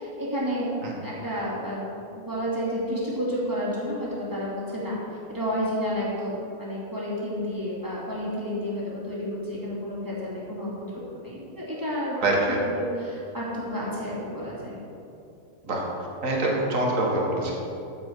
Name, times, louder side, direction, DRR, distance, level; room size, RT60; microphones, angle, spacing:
voice 1, 0.0-0.7 1.0-12.2 12.8-14.8, equal, 15° right, -7 dB, 2.7 m, -31 dB
voice 2, 12.2-12.6 15.6-15.8 16.2-17.5, right 2 dB, 65° right, -2 dB, 2.1 m, -24 dB
13.5 x 7.7 x 4.7 m, 2.8 s
omnidirectional pair, 1.5 m